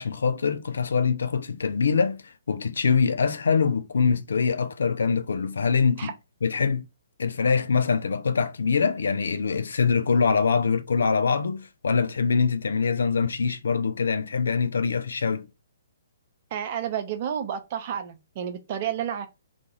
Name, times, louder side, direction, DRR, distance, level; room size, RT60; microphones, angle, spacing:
voice 1, 0.0-6.1 6.4-6.8 7.2-15.5, left 5 dB, 70° left, 0.4 m, -24 dB
voice 2, 16.5-19.3, right 9 dB, 40° right, 0.6 m, -30 dB
2.4 x 2.3 x 2.9 m
figure-of-eight pair, 125°, 0 cm